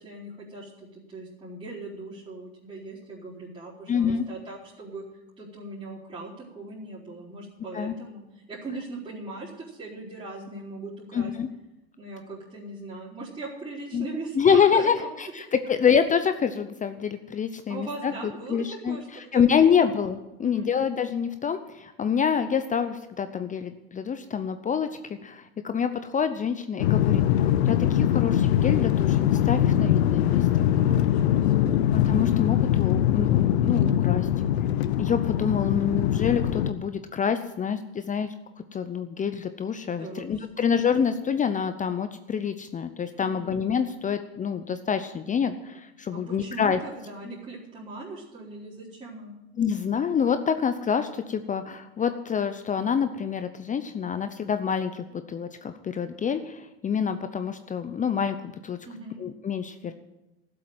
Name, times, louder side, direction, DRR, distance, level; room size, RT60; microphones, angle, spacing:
voice 1, 0.0-5.0 5.4-11.3 12.0-15.1 17.7-19.9 20.4-20.7 30.7-31.8 39.9-40.6 43.2-43.5 46.1-49.4 58.8-59.2, right 2 dB, 20° right, -10 dB, 4.5 m, -39 dB
voice 2, 3.9-4.3 7.7-7.9 11.1-11.5 13.9-14.1 14.4-18.1 18.5-30.7 32.1-34.3 35.0-38.3 38.7-46.8 49.6-58.8 59.2-59.9, left 7 dB, 25° left, 10 dB, 0.7 m, -26 dB
sound 1, 26.8-36.7, left 11 dB, 85° left, 0.8 m, -22 dB
13.0 x 7.8 x 9.1 m, 0.97 s
supercardioid pair, 100°, 31 cm